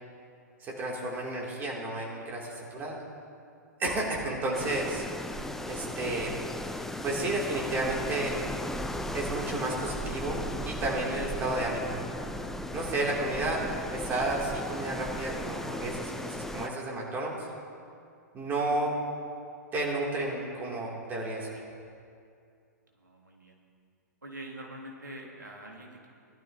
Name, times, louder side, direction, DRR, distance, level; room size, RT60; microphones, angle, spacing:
voice 1, 0.6-3.0 3.8-5.4 5.7-6.4 7.0-8.4 9.1-12.1 12.7-13.7 13.9-17.5 18.3-19.0 19.7-21.6, right 2 dB, 20° right, -3 dB, 2.7 m, -32 dB
sound 1, 4.5-16.7, left 1 dB, 5° left, 0.5 m, -36 dB
voice 2, 23.0-23.6 24.2-26.1, right 1 dB, 80° right, 0 dB, 1.7 m, -44 dB
19.0 x 12.0 x 2.8 m, 2.4 s
figure-of-eight pair, 110°, 10 cm